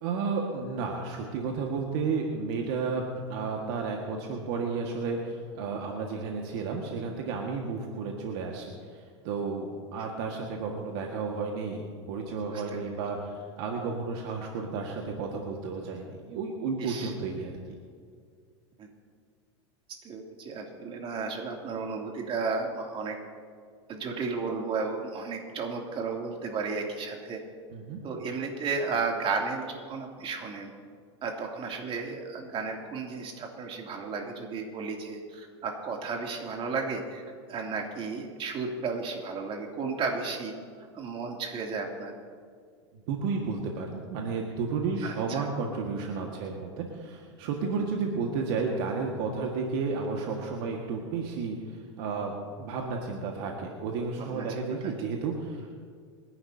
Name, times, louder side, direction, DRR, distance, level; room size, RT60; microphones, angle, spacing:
voice 1, 0.0-3.0 3.3-17.5 27.7-28.0 43.1-55.8, right 4 dB, 60° right, 1 dB, 1.8 m, -32 dB
voice 2, 12.5-12.9 16.8-17.1 18.8-18.9 20.0-23.2 23.9-27.4 28.0-30.7 31.2-37.2 37.5-42.1 45.0-45.5 54.3-54.5 54.8-54.9, right 4 dB, 35° right, 1 dB, 2.8 m, -33 dB
28.0 x 11.0 x 2.8 m, 2.1 s
hypercardioid pair, 100°, 15 cm